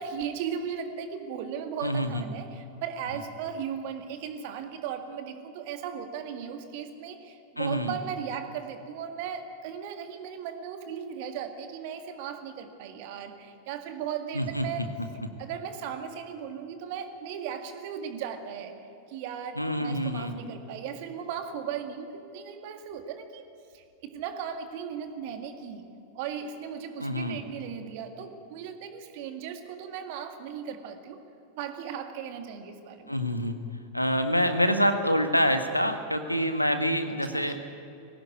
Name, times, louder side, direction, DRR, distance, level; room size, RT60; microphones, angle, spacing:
voice 1, 0.0-14.9 15.4-18.8 19.1-23.5 23.7-25.9 26.1-31.2 31.6-33.2 37.2-37.5, right 8 dB, 50° right, 7 dB, 2.0 m, -37 dB
voice 2, 1.8-2.2 7.6-7.9 14.3-14.7 19.6-20.3 27.0-27.4 33.1-33.5 33.9-37.5, equal, 90° left, 8 dB, 1.6 m, -26 dB
21.0 x 17.5 x 9.7 m, 2.6 s
figure-of-eight pair, 90°, 0 cm